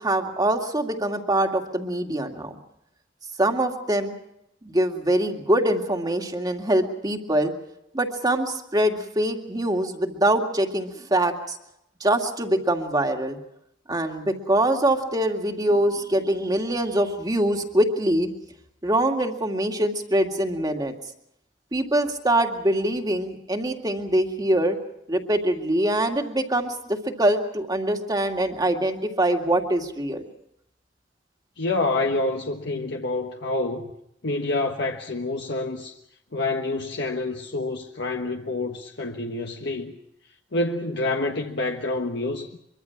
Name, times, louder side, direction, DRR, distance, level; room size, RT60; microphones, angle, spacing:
voice 1, 0.0-2.6 3.4-4.2 4.6-7.5 7.9-11.6 12.0-13.4 13.9-18.3 18.8-20.9 21.7-24.8 25.1-30.2, right 1 dB, 20° right, 2.2 m, -24 dB
voice 2, 31.6-33.9 34.2-35.9 36.3-40.0 40.5-42.5, left 2 dB, 65° left, 1.4 m, -27 dB
24.0 x 24.0 x 5.9 m
head